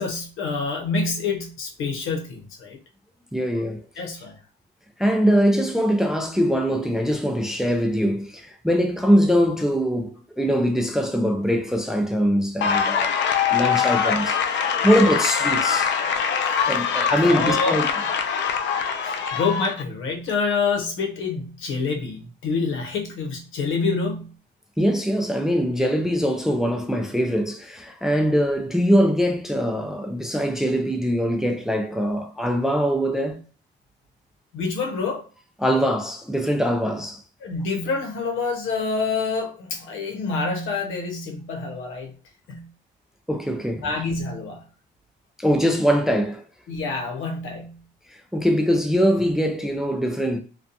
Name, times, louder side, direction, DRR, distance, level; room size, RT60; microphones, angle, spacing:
voice 1, 0.0-2.8 4.0-4.4 17.2-17.8 19.0-24.3 34.5-35.3 37.4-42.1 42.5-42.7 43.8-44.6 46.7-47.8, left 4 dB, 85° left, 0.8 m, -27 dB
voice 2, 3.3-3.8 5.0-13.1 13.5-15.9 16.7-17.9 24.8-33.4 35.6-37.2 43.3-43.9 45.4-46.4 48.1-50.4, equal, ahead, 0.4 m, -22 dB
sound 1, 12.6-19.8, left 7 dB, 65° left, 0.4 m, -23 dB
2.4 x 2.2 x 2.6 m
cardioid pair, 90°, 20 cm